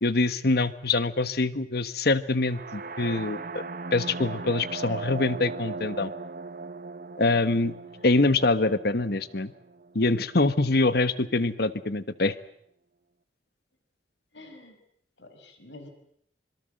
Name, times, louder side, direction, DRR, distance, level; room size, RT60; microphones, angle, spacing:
voice 1, 0.0-3.6 3.9-6.1 7.2-7.7 8.0-9.5 9.9-12.4, left 2 dB, 60° left, 14 dB, 1.2 m, -24 dB
sound 1, 2.5-10.3, right 3 dB, 50° right, 1.0 m, -38 dB
voice 2, 14.3-14.8 15.2-15.9, left 2 dB, 80° left, 7 dB, 5.2 m, -47 dB
25.5 x 22.5 x 7.8 m, 0.67 s
head